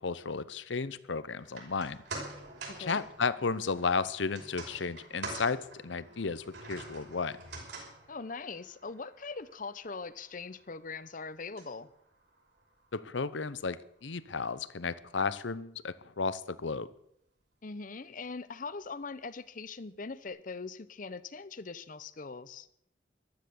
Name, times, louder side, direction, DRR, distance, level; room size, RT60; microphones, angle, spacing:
voice 1, 0.0-2.0 2.8-7.4 12.9-16.9, left 4 dB, 80° left, 16 dB, 0.8 m, -33 dB
sound 1, 1.4-13.8 14.1-14.2, right 2 dB, 65° right, 5.7 m, -47 dB
voice 2, 2.7-3.0 8.1-11.9 17.6-22.7, left 4 dB, 45° left, 15 dB, 0.7 m, -41 dB
14.5 x 12.5 x 7.0 m, 0.73 s
head